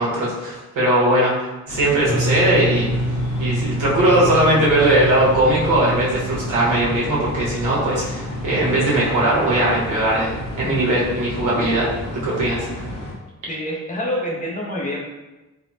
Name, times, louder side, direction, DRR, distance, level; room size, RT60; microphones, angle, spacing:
voice 1, 0.0-2.9 3.4-11.9 12.1-12.9, right 1 dB, 85° right, -5 dB, 1.1 m, -19 dB
sound 1, 1.7-13.1, equal, 70° left, 1.0 m, -32 dB
sound 2, 2.1-11.6, equal, 50° right, 0.9 m, -29 dB
voice 2, 13.5-15.0, equal, 25° left, -2 dB, 0.4 m, -26 dB
3.3 x 2.0 x 2.5 m, 1.1 s
wide cardioid pair, 145°, 30 cm